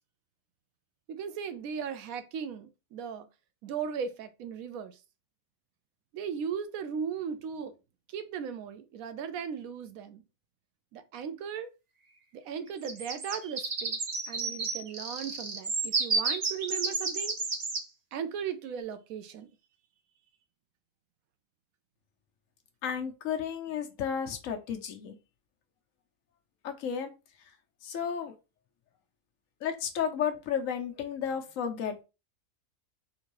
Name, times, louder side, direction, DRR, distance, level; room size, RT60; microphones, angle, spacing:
voice 1, 1.1-3.3 3.6-5.0 6.1-7.7 8.1-10.2 10.9-11.7 12.3-14.0 14.3-17.4 18.1-19.5, right 7 dB, 85° right, 1.0 m, -37 dB
sound 1, 12.8-17.8, right 4 dB, 45° right, 0.6 m, -31 dB
voice 2, 22.8-25.1 26.6-27.1 27.8-28.3 29.6-32.0, left 7 dB, 70° left, 1.1 m, -33 dB
3.8 x 2.6 x 3.0 m
omnidirectional pair, 1.4 m